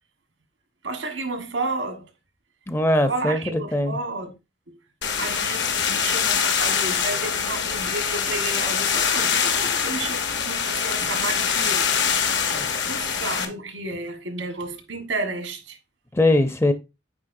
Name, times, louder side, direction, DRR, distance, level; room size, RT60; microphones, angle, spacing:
voice 1, 0.8-2.0 3.0-4.3 5.2-10.2 10.4-11.9 12.8-15.8, right 2 dB, 85° right, 1.3 m, -31 dB
voice 2, 2.7-4.0 12.4-12.7 16.1-16.7, left 1 dB, 15° left, 0.5 m, -21 dB
sound 1, 5.0-13.5, left 7 dB, 70° left, 1.0 m, -24 dB
8.6 x 4.2 x 2.6 m
head